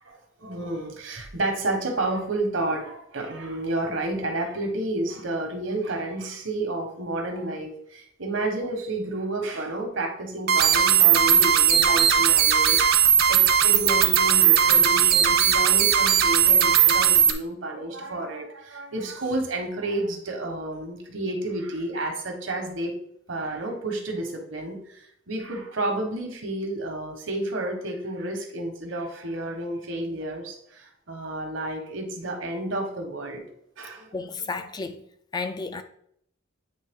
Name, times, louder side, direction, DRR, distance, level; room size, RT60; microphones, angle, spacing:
voice 1, 0.0-22.9 23.3-33.4 33.8-34.1, right 2 dB, 70° right, 1.1 m, -31 dB
sound 1, 10.5-17.3, right 9 dB, 50° right, 0.6 m, -18 dB
voice 2, 34.1-35.0 35.3-35.8, left 4 dB, 20° left, 0.3 m, -32 dB
8.7 x 3.1 x 3.6 m
head